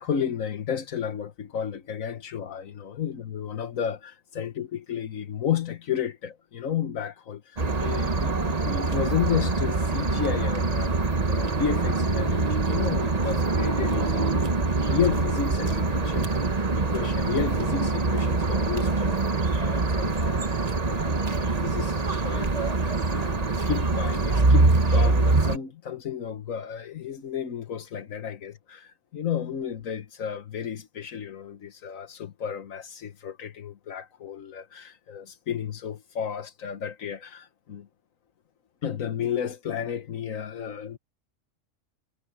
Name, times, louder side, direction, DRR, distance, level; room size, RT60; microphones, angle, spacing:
voice 1, 0.0-14.5 14.9-37.9 38.8-41.0, left 8 dB, 85° left, 1.6 m, -32 dB
sound 1, 7.6-25.6, right 3 dB, 30° right, 1.3 m, -24 dB
omnidirectional pair, 1.4 m